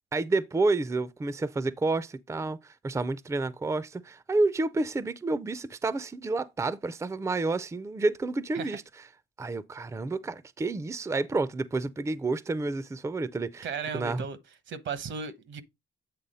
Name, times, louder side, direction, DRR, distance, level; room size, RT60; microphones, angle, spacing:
voice 1, 0.1-8.8 9.4-14.2, right 3 dB, 15° right, 0.5 m, -29 dB
voice 2, 13.6-14.4 14.7-15.6, right 6 dB, 70° right, 1.0 m, -35 dB
8.3 x 3.4 x 5.4 m
cardioid pair, 90°, 20 cm